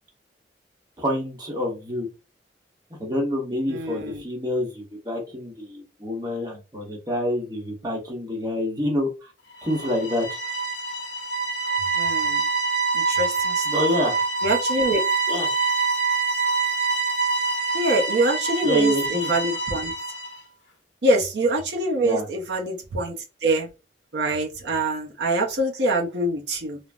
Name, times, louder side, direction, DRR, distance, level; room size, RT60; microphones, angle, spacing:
voice 1, 1.0-2.1 3.0-9.3 9.6-10.4 13.6-14.2 15.3-15.5 18.6-19.3 22.0-22.3, left 1 dB, 20° right, 0 dB, 0.8 m, -27 dB
voice 2, 3.7-4.2 12.0-12.5 12.9-13.9 14.4-15.0 17.7-19.9 21.0-23.7 24.1-26.8, right 2 dB, 60° right, 0 dB, 0.6 m, -24 dB
sound 1, 9.6-20.4, right 4 dB, 75° left, 0.7 m, -25 dB
3.3 x 2.0 x 2.4 m, 0.28 s
head